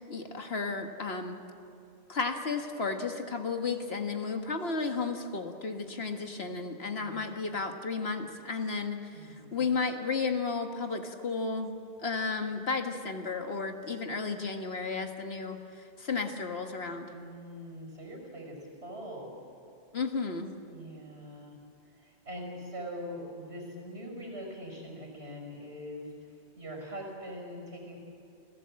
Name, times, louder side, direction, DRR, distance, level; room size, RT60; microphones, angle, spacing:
voice 1, 0.1-1.4 2.1-11.7 12.0-17.1 19.9-20.5, left 4 dB, 65° left, 5 dB, 1.8 m, -33 dB
voice 2, 9.1-9.7 17.1-19.3 20.7-21.6 21.8-28.0, equal, 70° right, 1 dB, 5.8 m, -43 dB
28.5 x 17.0 x 7.7 m, 2.7 s
omnidirectional pair, 1.1 m